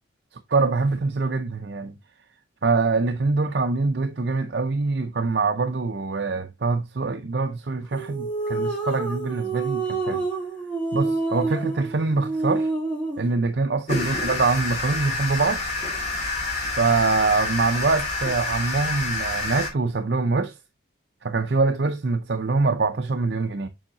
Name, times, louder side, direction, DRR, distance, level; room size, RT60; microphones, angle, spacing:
voice 1, 0.5-1.9 2.6-10.2 10.9-12.7 13.2-15.6 16.8-20.5 21.2-23.7, right 3 dB, 60° right, 0.6 m, -24 dB
sound 1, 7.9-13.3, right 3 dB, 5° left, 3.2 m, -28 dB
sound 2, 13.9-19.7, left 2 dB, 40° left, 3.0 m, -28 dB
7.1 x 5.6 x 2.8 m
head